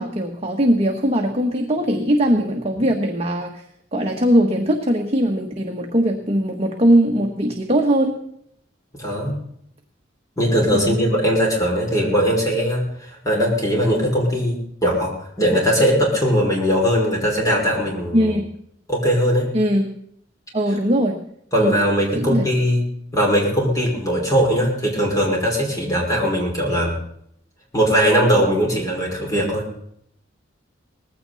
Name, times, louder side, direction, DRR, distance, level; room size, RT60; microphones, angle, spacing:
voice 1, 0.0-3.6 3.9-8.2 10.7-11.1 18.1-18.5 19.5-19.9 20.5-21.2 21.6-21.8 22.1-22.4, equal, 30° right, 2 dB, 1.4 m, -20 dB
voice 2, 9.0-9.4 10.4-18.3 18.9-19.5 21.5-22.8 23.1-27.0 27.7-29.7, equal, 20° left, -2 dB, 5.4 m, -20 dB
19.0 x 16.0 x 4.1 m, 0.69 s
head